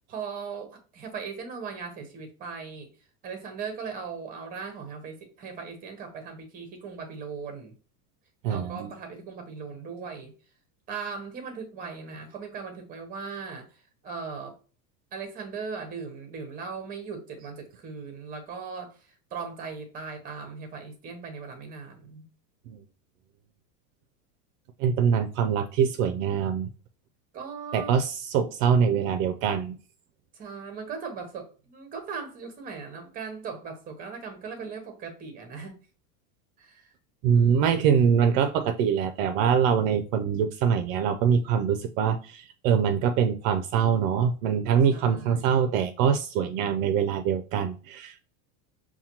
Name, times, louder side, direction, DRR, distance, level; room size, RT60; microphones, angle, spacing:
voice 1, 0.1-2.9 3.2-7.7 8.5-10.3 10.9-14.6 15.1-22.2 27.3-28.0 30.3-35.8 36.6-36.9 37.3-37.9 44.9-45.7, right 5 dB, 20° right, 0.7 m, -38 dB
voice 2, 8.4-8.9 22.7-22.8 24.8-26.7 27.7-29.8 37.2-48.2, right 7 dB, 60° right, 0.5 m, -24 dB
5.6 x 2.3 x 2.8 m
supercardioid pair, 165°, 45 cm